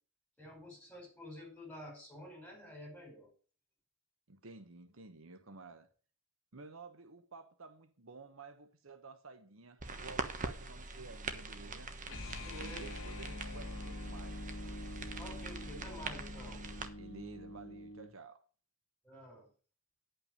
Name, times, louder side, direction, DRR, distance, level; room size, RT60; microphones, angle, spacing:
voice 1, 0.4-3.3 12.4-12.8 15.2-16.7 19.0-19.5, left 1 dB, 5° left, 5.2 m, -49 dB
voice 2, 4.3-5.9 6.5-11.9 12.6-14.5 17.0-18.4, right 3 dB, 70° right, 1.1 m, -53 dB
sound 1, 9.8-16.9, right 3 dB, 40° right, 1.2 m, -43 dB
sound 2, 12.0-18.1, left 1 dB, 70° left, 2.0 m, -45 dB
10.5 x 5.7 x 6.5 m
head